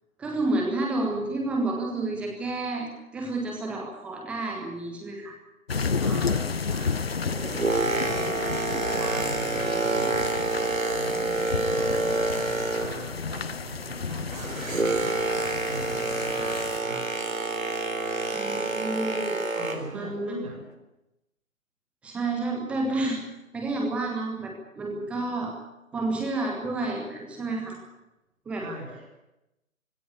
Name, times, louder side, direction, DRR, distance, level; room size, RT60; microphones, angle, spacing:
voice 1, 0.2-5.3 8.1-8.2 18.3-19.4 19.9-20.4 22.0-23.2 23.5-25.5 25.9-27.8 28.4-28.7, right 2 dB, 5° right, 1 dB, 1.3 m, -30 dB
sound 1, 5.7-16.8, left 5 dB, 45° left, 0.8 m, -32 dB
voice 2, 5.9-8.3 9.0-10.3 10.7-17.1 19.5-20.6 28.6-29.0, right 2 dB, 25° right, 1 dB, 6.3 m, -41 dB
Boat Water vehicle, 7.2-13.2 13.5-20.0 20.6-20.7, right 3 dB, 70° right, 4.1 m, -28 dB
19.0 x 17.0 x 9.9 m, 0.95 s
figure-of-eight pair, 145°, 42 cm